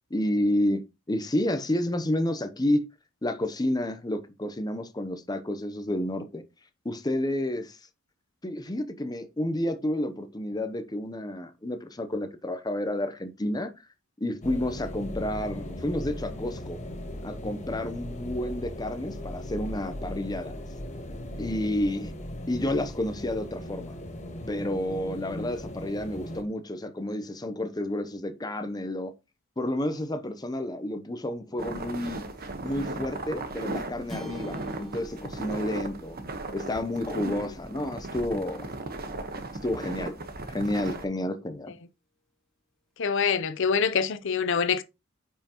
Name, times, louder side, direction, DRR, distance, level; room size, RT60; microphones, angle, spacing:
voice 1, 0.1-2.8 3.2-6.4 6.8-7.8 8.4-13.7 14.2-16.8 17.2-20.6 21.4-22.1 22.5-23.9 24.5-29.1 29.6-32.2 32.6-36.2 36.5-38.7 39.6-40.2 40.5-41.7, left 1 dB, 20° left, 0.8 m, -30 dB
sound 1, 14.4-26.4, left 1 dB, 35° left, 1.3 m, -38 dB
sound 2, 31.6-41.0, right 2 dB, 50° right, 1.2 m, -37 dB
sound 3, 34.1-38.6, left 1 dB, ahead, 2.2 m, -45 dB
voice 2, 43.0-44.8, left 6 dB, 65° left, 0.6 m, -25 dB
8.9 x 5.6 x 3.0 m
head